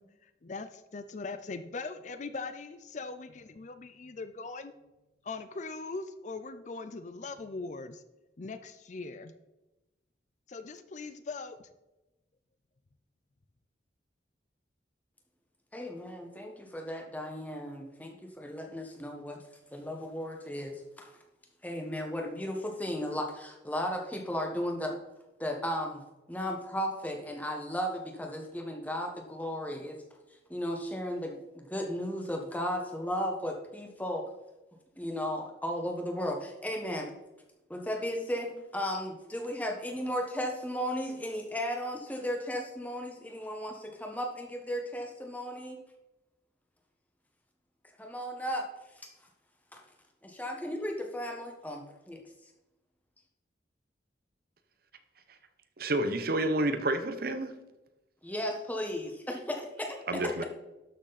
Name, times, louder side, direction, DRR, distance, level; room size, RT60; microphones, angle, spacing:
voice 1, 0.2-4.7 5.2-8.0 8.4-9.3 10.5-11.6, left 3 dB, 40° left, 11 dB, 0.5 m, -40 dB
voice 2, 15.7-19.4 19.7-21.1 21.6-25.0 25.4-26.0 26.3-30.0 30.5-34.2 35.0-37.1 37.7-45.8 48.0-48.7 49.0-49.1 49.7-49.8 50.2-52.2 58.2-60.0, equal, 10° left, 2 dB, 1.3 m, -35 dB
voice 3, 55.8-57.5 60.1-60.4, right 1 dB, 55° right, 9 dB, 0.9 m, -29 dB
12.5 x 6.3 x 4.1 m, 1.0 s
head